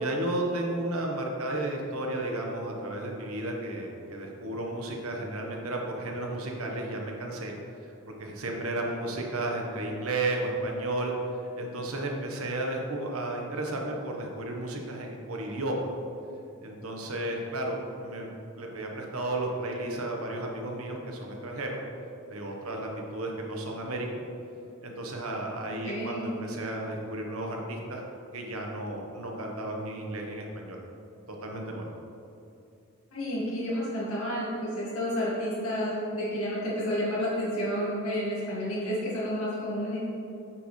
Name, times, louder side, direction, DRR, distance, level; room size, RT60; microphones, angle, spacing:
voice 1, 0.0-7.5 8.2-11.1 11.5-15.9 16.6-18.3 18.6-21.8 22.3-24.1 24.8-28.0 28.3-30.8 31.3-31.9, right 1 dB, 85° right, 1 dB, 1.2 m, -33 dB
voice 2, 25.5-26.3 33.1-40.0, equal, 85° left, -8 dB, 1.8 m, -31 dB
8.9 x 6.5 x 3.2 m, 2.7 s
head